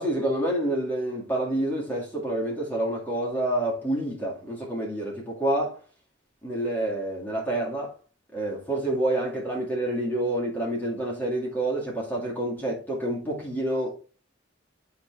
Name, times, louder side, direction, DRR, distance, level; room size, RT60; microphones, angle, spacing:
voice 1, 0.0-5.8 6.4-8.0 8.3-14.0, right 1 dB, 10° left, 2.1 m, -28 dB
8.4 x 5.0 x 2.5 m
head